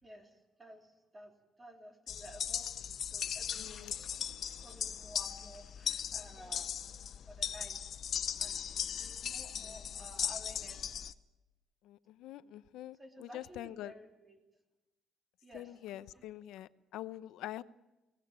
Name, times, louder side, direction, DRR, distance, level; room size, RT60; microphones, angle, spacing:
voice 1, 0.0-3.9 4.6-6.7 7.2-7.8 8.4-8.6 9.0-11.0 13.0-14.4 15.4-16.3, equal, 15° right, 3 dB, 3.3 m, -54 dB
sound 1, 2.1-11.1, left 8 dB, 50° left, 0.7 m, -38 dB
voice 2, 3.6-3.9 11.8-13.9 15.5-17.6, left 14 dB, 85° left, 15 dB, 0.7 m, -45 dB
23.0 x 18.5 x 8.9 m, 1.0 s
cardioid pair, 140°, 0 cm